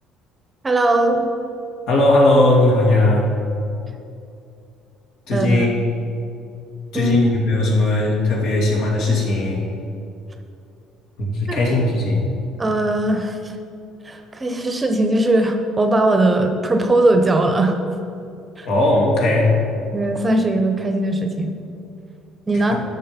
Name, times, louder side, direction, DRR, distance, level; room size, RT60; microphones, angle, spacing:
voice 1, 0.6-1.3 5.3-5.6 6.9-7.2 11.5-11.9 12.6-13.4 14.1-17.7 18.6-18.7 19.9-21.5 22.5-22.8, right 2 dB, 20° right, 5 dB, 0.8 m, -19 dB
voice 2, 1.9-3.3 5.3-5.7 6.9-9.7 11.2-12.2 18.6-19.5 22.5-22.8, left 2 dB, 70° left, -2 dB, 2.4 m, -18 dB
10.5 x 6.6 x 5.2 m, 2.6 s
cardioid pair, 115°, 0 cm